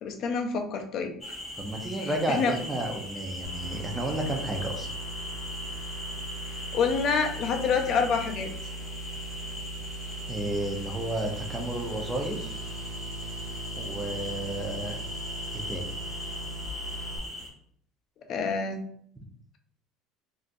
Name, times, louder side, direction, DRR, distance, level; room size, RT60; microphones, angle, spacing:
voice 1, 0.0-1.1 2.3-2.5 6.7-8.5 18.3-18.8, left 5 dB, 40° left, 6 dB, 0.4 m, -27 dB
sound 1, 1.2-17.5, left 1 dB, 10° left, 1.1 m, -39 dB
voice 2, 1.6-4.9 10.3-12.6 13.8-15.0 15.5-15.9, right 1 dB, 10° right, 1 dB, 0.6 m, -32 dB
sound 2, 3.4-17.2, right 2 dB, 55° right, 1.3 m, -39 dB
3.3 x 2.6 x 2.5 m, 0.65 s
cardioid pair, 155°, 0 cm